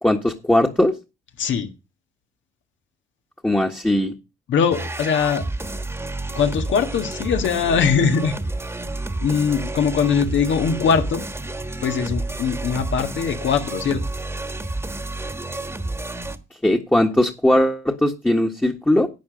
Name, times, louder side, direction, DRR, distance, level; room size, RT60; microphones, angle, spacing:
voice 1, 0.0-0.9 3.4-4.1 16.6-19.1, left 1 dB, 10° left, 2 dB, 1.5 m, -19 dB
voice 2, 1.4-1.7 4.5-5.4 6.3-8.4 9.2-11.2 11.8-14.0, left 6 dB, 70° left, 6 dB, 1.7 m, -21 dB
sound 1, 4.7-16.4, right 2 dB, 10° right, 1.5 m, -30 dB
11.5 x 8.7 x 5.1 m, 0.28 s
cardioid pair, 90°, 20 cm